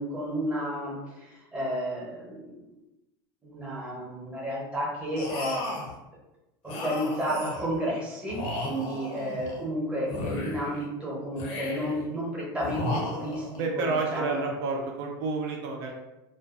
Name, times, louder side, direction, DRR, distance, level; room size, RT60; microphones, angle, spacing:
voice 1, 0.0-2.6 3.4-5.6 6.6-13.5 13.8-14.4, equal, 10° right, -5 dB, 1.0 m, -32 dB
sound 1, 5.2-6.0 6.7-7.8 8.3-9.6 10.1-10.8 11.4-12.1 12.6-13.6, left 2 dB, 55° left, 0.7 m, -34 dB
voice 2, 13.5-15.9, right 3 dB, 60° right, 1 dB, 0.6 m, -30 dB
2.5 x 2.2 x 2.4 m, 0.97 s
supercardioid pair, 130°, 12 cm